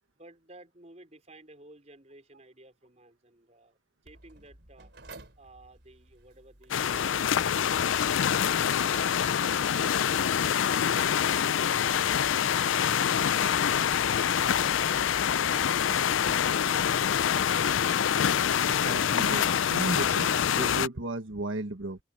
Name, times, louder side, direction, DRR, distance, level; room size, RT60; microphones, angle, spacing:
voice 1, 0.1-4.9 5.4-9.9, right 2 dB, 35° right, 4.7 m, -55 dB
Mechanical fan, 4.1-20.1, right 1 dB, 60° right, 4.1 m, -52 dB
sound 1, 6.7-20.9, left 8 dB, 80° left, 0.4 m, -26 dB
sound 2, 13.5-19.0, left 4 dB, 65° left, 0.9 m, -46 dB
voice 2, 18.7-22.0, right 2 dB, 85° right, 1.5 m, -35 dB
open air
head